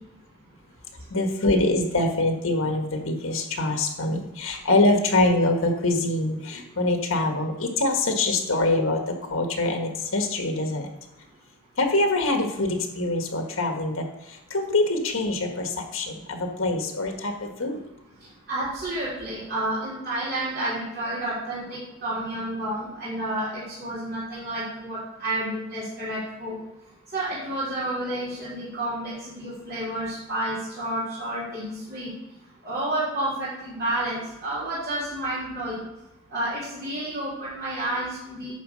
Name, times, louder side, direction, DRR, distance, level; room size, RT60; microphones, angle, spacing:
voice 1, 1.1-10.9 11.8-14.0 14.5-17.8, left 2 dB, 70° left, 3 dB, 1.5 m, -24 dB
voice 2, 18.2-26.6 27.1-32.1 32.6-35.8 36.3-38.5, right 1 dB, 55° right, -10 dB, 2.9 m, -30 dB
9.3 x 4.1 x 6.3 m, 0.94 s
head